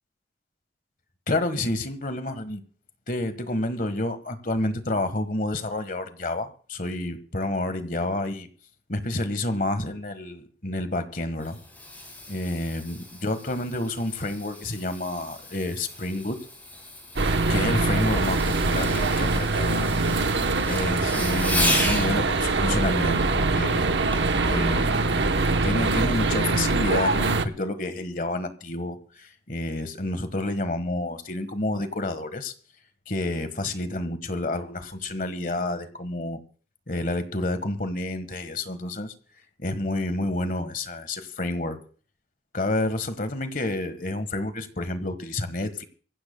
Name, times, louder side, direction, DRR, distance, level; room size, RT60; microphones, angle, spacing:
voice 1, 1.3-2.6 3.1-8.5 8.9-11.6 12.3-16.4 17.2-23.9 24.4-25.3 25.6-32.5 33.1-36.4 36.9-39.1 39.6-41.8 42.5-45.8, left 1 dB, 50° left, 1.5 m, -29 dB
Fireworks, 11.1-22.1 24.1-24.4 25.0-25.1, left 1 dB, 10° left, 6.2 m, -34 dB
sound 1, 17.2-27.5, right 3 dB, 80° right, 1.0 m, -23 dB
24.0 x 15.5 x 2.3 m
head